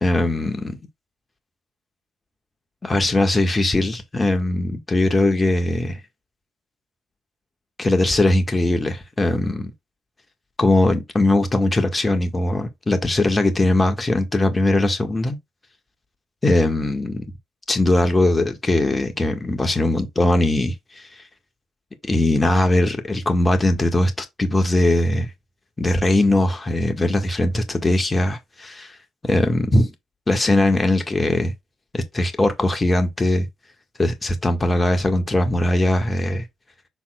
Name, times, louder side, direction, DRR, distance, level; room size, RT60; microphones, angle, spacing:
voice 1, 0.0-0.8 2.8-6.0 7.8-9.7 10.6-15.4 16.4-17.2 17.7-21.1 22.1-25.3 25.8-28.9 29.2-29.9 30.3-31.5 31.9-33.5 34.0-36.4, left 1 dB, 30° left, 1.6 m, -20 dB
7.1 x 5.8 x 2.3 m
hypercardioid pair, 40°, 0 cm